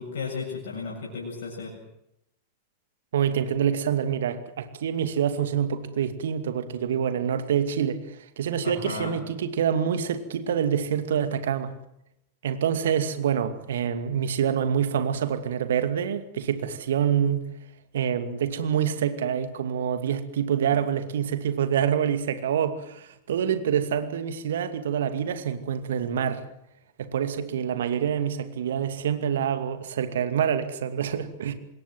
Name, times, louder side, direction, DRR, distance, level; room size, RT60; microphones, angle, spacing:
voice 1, 0.0-1.7 8.6-9.2 20.7-20.8, left 4 dB, 65° left, 7.6 m, -34 dB
voice 2, 3.1-11.7 12.4-17.4 17.9-26.4 27.0-31.5, right 8 dB, 65° right, 2.4 m, -26 dB
26.5 x 21.0 x 7.7 m
figure-of-eight pair, 95°, 0 cm